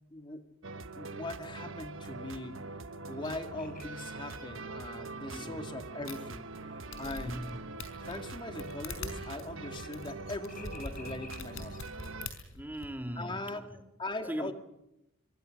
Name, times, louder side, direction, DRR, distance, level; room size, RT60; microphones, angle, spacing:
voice 1, 0.1-0.5 1.0-2.6 3.1-6.5 7.0-7.4 8.1-11.8 13.2-13.7 14.0-14.5, left 2 dB, 25° left, 2.1 m, -40 dB
sound 1, 0.6-12.3, right 3 dB, 70° right, 1.3 m, -43 dB
sound 2, 3.1-11.8, left 3 dB, 45° left, 4.5 m, -55 dB
voice 2, 5.3-5.7 7.2-7.6 12.5-13.8 14.3-14.5, equal, 10° right, 2.0 m, -39 dB
sound 3, 6.1-6.2 6.6-6.7 6.9-7.5 7.8-12.9, left 3 dB, 90° left, 5.3 m, -43 dB
25.0 x 24.5 x 6.5 m
head